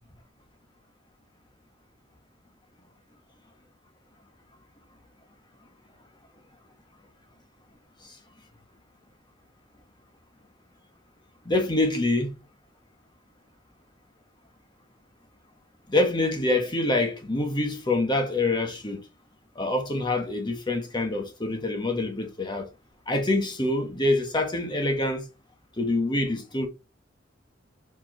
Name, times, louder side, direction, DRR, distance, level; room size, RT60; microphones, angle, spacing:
voice 1, 11.4-12.3 15.9-19.0 19.5-22.7 23.1-25.2 25.8-26.7, left 2 dB, 25° left, 1.6 m, -25 dB
5.2 x 5.0 x 4.6 m
head